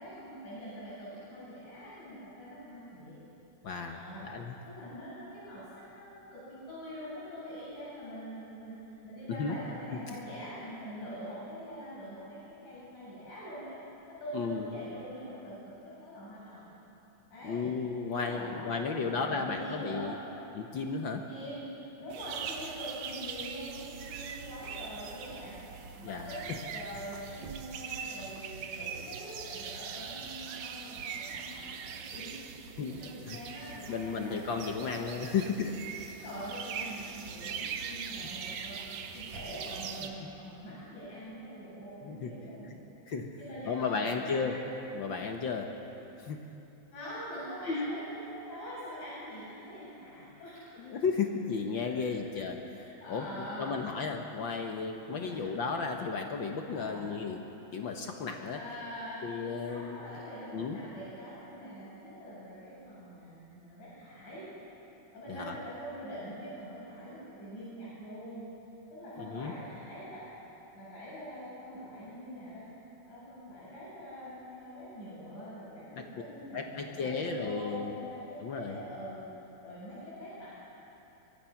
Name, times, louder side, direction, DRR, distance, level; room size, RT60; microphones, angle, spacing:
voice 1, 0.0-3.2 3.9-4.3 4.7-13.8 14.1-16.6 17.3-17.7 18.1-20.1 21.3-21.7 22.0-25.6 26.0-35.5 36.1-38.8 39.1-42.7 43.4-44.4 45.1-45.2 46.9-50.8 51.8-52.4 52.8-53.7 55.1-55.6 56.7-57.0 58.5-59.4 59.6-64.5 65.1-68.5 68.9-70.2 70.7-72.6 73.0-79.2 79.6-80.6, equal, 75° left, -10 dB, 8.6 m, -44 dB
voice 2, 3.6-4.6 9.3-9.6 9.9-10.2 14.3-14.7 17.4-20.2 20.5-21.3 26.0-26.3 32.8-32.9 33.3-33.4 33.9-35.8 42.0-42.3 42.7-43.4 43.6-45.7 46.2-46.5 47.7-48.0 49.8-49.9 50.8-57.4 57.7-58.6 59.2-60.0 60.5-60.8 65.3-65.6 69.2-69.5 75.9-76.0 76.5-78.0 78.4-78.8, left 5 dB, 60° left, 3 dB, 1.3 m, -34 dB
sound 1, 22.1-40.1, right 7 dB, 70° right, 2.2 m, -42 dB
24.0 x 21.5 x 5.9 m, 3.0 s
omnidirectional pair, 3.5 m